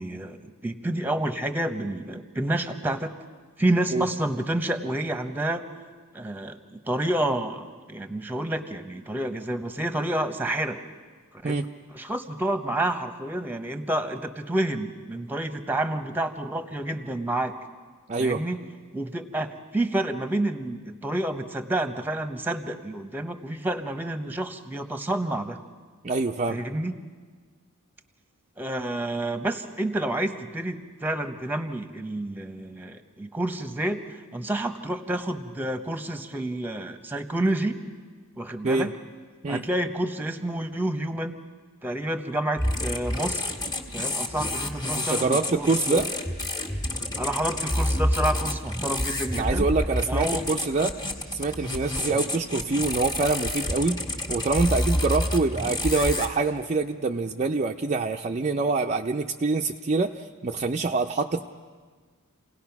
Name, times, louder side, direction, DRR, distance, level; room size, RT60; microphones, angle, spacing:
voice 1, 0.0-3.1 3.6-5.7 6.1-10.8 11.3-11.6 11.9-17.6 18.2-18.6 18.9-25.6 26.5-26.9 28.6-37.8 38.4-39.0 39.5-41.4 41.8-43.5 43.9-46.1 47.2-49.7 50.1-50.4, right 1 dB, 10° right, 8 dB, 1.0 m, -29 dB
voice 2, 18.1-18.4 26.0-26.7 38.6-38.9 39.4-39.6 45.0-46.1 49.3-51.0 51.3-54.0 54.3-61.4, right 3 dB, 30° right, 3 dB, 0.5 m, -25 dB
sound 1, 42.6-56.3, left 1 dB, 20° left, 1.8 m, -29 dB
28.5 x 18.0 x 5.9 m, 1.5 s
head